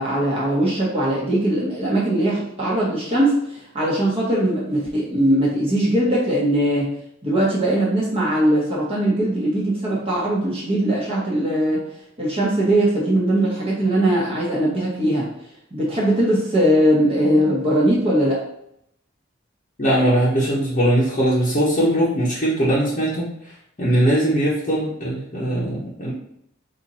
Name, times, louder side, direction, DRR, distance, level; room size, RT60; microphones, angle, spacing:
voice 1, 0.0-6.9 7.2-11.8 12.2-15.3 15.7-18.4, right 1 dB, 30° right, -6 dB, 1.1 m, -20 dB
voice 2, 19.8-23.2 23.8-26.1, right 1 dB, 40° left, -8 dB, 0.9 m, -20 dB
4.2 x 2.7 x 4.2 m, 0.75 s
head